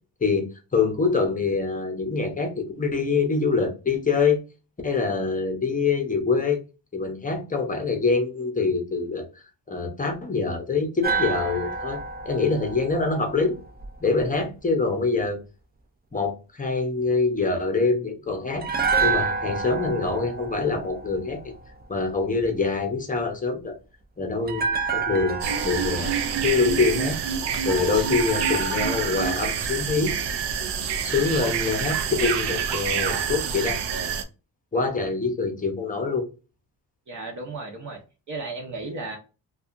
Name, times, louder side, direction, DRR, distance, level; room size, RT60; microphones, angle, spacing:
voice 1, 0.2-4.4 4.8-6.6 6.9-9.3 9.7-12.0 12.2-13.5 14.0-15.4 16.1-21.5 21.9-23.8 24.2-26.2 26.4-27.2 27.6-30.1 31.0-33.8 34.7-36.3, left 4 dB, 20° left, 0.7 m, -25 dB
sound 1, 11.0-14.2 18.6-21.8 24.5-27.7 28.0-28.1, right 4 dB, 25° right, 0.4 m, -29 dB
sound 2, 25.4-34.2, right 7 dB, 80° right, 0.6 m, -27 dB
voice 2, 37.1-38.0 38.3-39.2, right 3 dB, 45° right, 0.7 m, -34 dB
2.7 x 2.3 x 2.4 m
cardioid pair, 115°, 41 cm